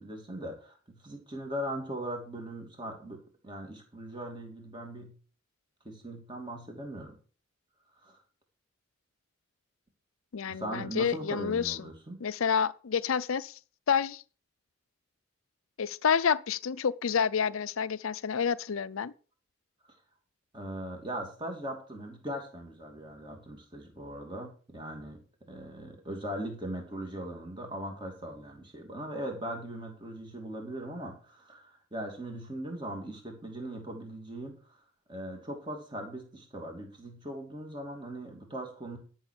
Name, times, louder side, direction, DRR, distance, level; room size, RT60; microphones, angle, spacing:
voice 1, 0.0-5.1 5.8-7.1 8.0-8.2 10.5-12.2 20.5-34.8 35.1-39.0, right 1 dB, 20° right, 2.8 m, -40 dB
voice 2, 10.3-11.8 12.2-13.5 13.9-14.2 15.8-19.1, left 6 dB, 85° left, 0.5 m, -29 dB
12.5 x 6.3 x 6.7 m
head